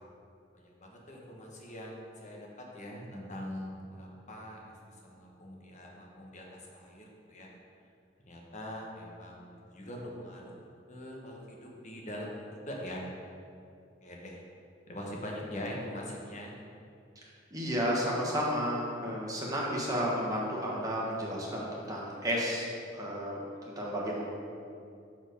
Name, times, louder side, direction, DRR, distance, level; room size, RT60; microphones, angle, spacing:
voice 1, 0.5-7.5 8.3-9.4 9.7-13.0 14.0-14.4 14.9-16.5, left 1 dB, 40° left, -1 dB, 1.1 m, -43 dB
voice 2, 17.5-22.7 22.9-23.4 23.7-24.2, equal, 20° right, -4 dB, 1.3 m, -32 dB
6.3 x 4.5 x 5.3 m, 2.4 s
head